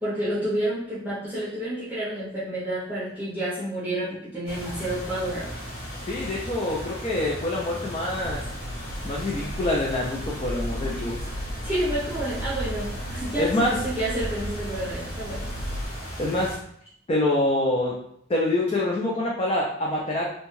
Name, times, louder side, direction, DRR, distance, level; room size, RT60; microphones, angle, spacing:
voice 1, 0.0-5.5 11.6-15.5, right 1 dB, 10° right, -10 dB, 0.6 m, -29 dB
sound 1, 4.5-16.6, equal, 50° left, 0.8 m, -36 dB
voice 2, 6.1-8.4 9.0-11.2 13.4-13.8 16.2-16.6 17.1-18.0 18.3-20.3, left 1 dB, 30° left, -3 dB, 0.3 m, -25 dB
sound 2, 8.2-15.9, equal, 80° right, 0.4 m, -36 dB
2.7 x 2.2 x 3.0 m, 0.68 s
head